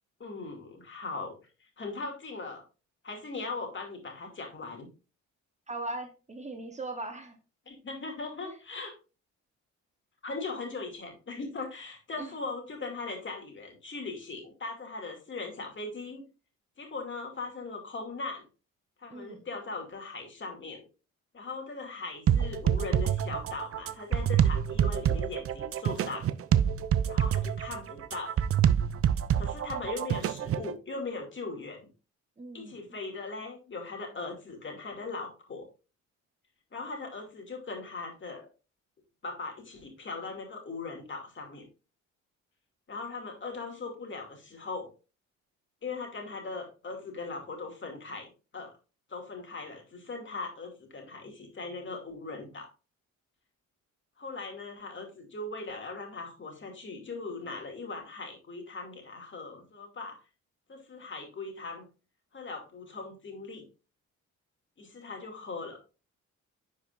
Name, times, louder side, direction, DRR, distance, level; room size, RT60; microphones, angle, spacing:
voice 1, 0.2-1.4 1.8-2.6 3.0-4.9 7.7-8.9 10.2-16.2 16.8-18.4 19.0-20.8 21.3-26.3 27.1-28.4 29.4-31.9 32.5-35.7 36.7-38.5 39.2-41.7 42.9-44.9 45.8-48.7 49.1-52.7 54.2-60.2 60.7-61.8 62.3-63.6 64.8-65.8, left 3 dB, 40° left, 2 dB, 2.4 m, -39 dB
voice 2, 5.7-7.4 8.4-8.6 12.2-12.3 19.1-19.4 32.4-33.0, right 2 dB, 25° right, 6 dB, 1.0 m, -39 dB
sound 1, 22.3-30.7, right 9 dB, 50° right, 0.6 m, -27 dB
10.5 x 4.7 x 2.5 m, 0.32 s
cardioid pair, 90°, 30 cm